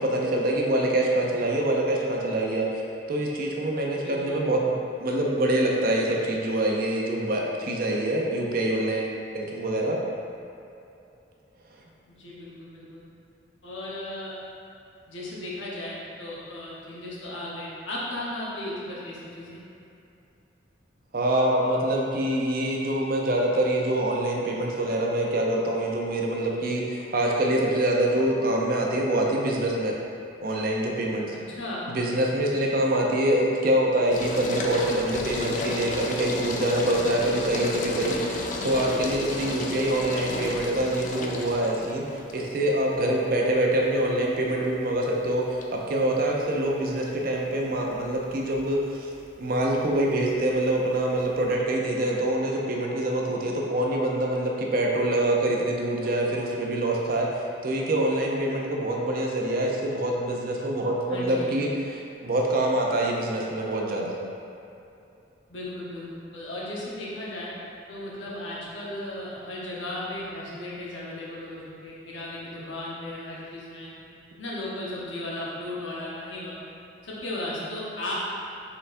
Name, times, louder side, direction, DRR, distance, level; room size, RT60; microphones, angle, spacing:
voice 1, 0.0-2.7 3.1-10.0 21.1-30.0 30.4-31.3 31.9-49.1 49.4-64.2, right 1 dB, 50° right, -1 dB, 0.5 m, -25 dB
voice 2, 3.9-4.5 12.1-13.0 13.6-14.3 15.1-19.6 31.5-31.9 61.1-61.6 65.5-67.5 67.9-73.9 74.4-76.6 77.0-78.1, left 1 dB, 80° left, -6 dB, 0.9 m, -36 dB
sound 1, 34.1-51.5, left 2 dB, 40° left, 0.3 m, -34 dB
4.2 x 3.9 x 2.5 m, 2.7 s
head